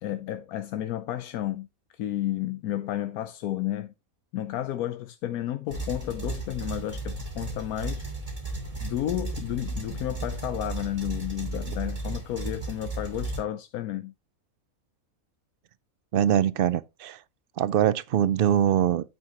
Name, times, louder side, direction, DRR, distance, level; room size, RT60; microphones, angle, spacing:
voice 1, 0.0-1.7 2.0-3.9 4.3-8.1 8.8-14.1, left 12 dB, 85° left, 1.1 m, -32 dB
sound 1, 5.7-13.4, right 2 dB, 25° right, 2.9 m, -34 dB
voice 2, 16.1-17.2 17.6-19.2, right 10 dB, 70° right, 0.5 m, -23 dB
9.5 x 7.6 x 2.9 m
omnidirectional pair, 1.5 m